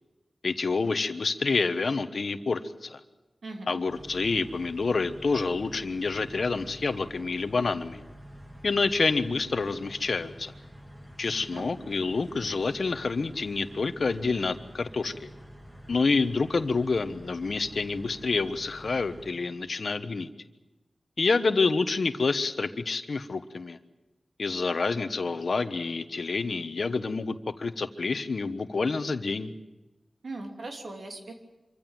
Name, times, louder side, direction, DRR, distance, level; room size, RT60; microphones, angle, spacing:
voice 1, 0.4-3.0 3.7-8.0 8.6-10.5 11.2-15.3 15.9-20.3 21.2-23.8 24.4-29.5, left 4 dB, 70° left, 10 dB, 1.2 m, -28 dB
voice 2, 3.4-3.8 11.2-11.7 30.2-31.3, right 2 dB, 80° right, 3 dB, 3.1 m, -40 dB
sound 1, 3.9-19.3, equal, 15° right, 2.8 m, -48 dB
25.5 x 15.5 x 8.9 m, 1.1 s
cardioid pair, 55°, 0 cm